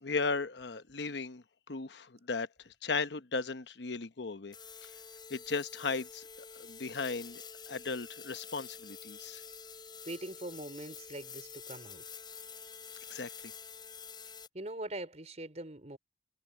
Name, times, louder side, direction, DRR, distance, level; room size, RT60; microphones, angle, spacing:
voice 1, 0.0-4.5 4.8-4.9 5.3-6.2 6.5-9.4 13.1-13.3, left 4 dB, 80° left, 1.0 m, -36 dB
sound 1, 4.5-14.5, left 6 dB, 25° left, 5.4 m, -48 dB
voice 2, 10.0-12.0 14.5-16.0, right 1 dB, 40° right, 4.6 m, -42 dB
head